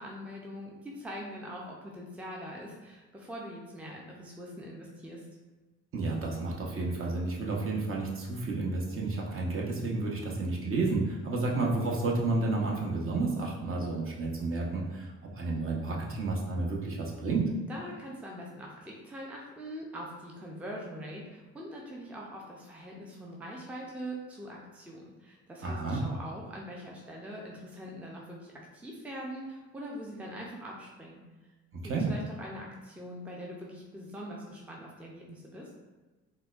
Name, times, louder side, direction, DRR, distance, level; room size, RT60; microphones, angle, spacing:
voice 1, 0.0-5.2 17.7-31.2 31.8-35.7, equal, 5° right, -2 dB, 0.4 m, -43 dB
voice 2, 5.9-17.5 25.6-26.0 31.8-32.1, right 3 dB, 45° right, -2 dB, 0.8 m, -31 dB
4.0 x 2.2 x 2.4 m, 1.2 s
cardioid pair, 90°, 30 cm